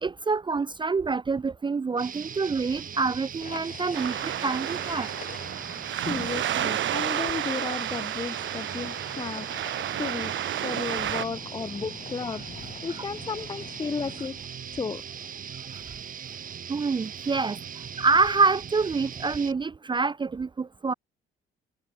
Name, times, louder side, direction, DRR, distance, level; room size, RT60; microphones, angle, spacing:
voice 1, 0.0-5.1 6.0-6.3 15.7-15.8 16.7-17.6 18.0-20.9, right 4 dB, 25° right, 0.5 m, -26 dB
sound 1, 2.0-19.5, right 8 dB, 45° right, 1.0 m, -40 dB
sound 2, 3.4-7.1 8.1-14.5, left 6 dB, 45° left, 4.7 m, -46 dB
sound 3, 3.9-11.3, right 11 dB, 70° right, 2.5 m, -31 dB
voice 2, 5.9-9.7 10.0-10.3 10.6-12.5 12.8-15.0, left 5 dB, 20° left, 0.6 m, -34 dB
cardioid pair, 90°, 20 cm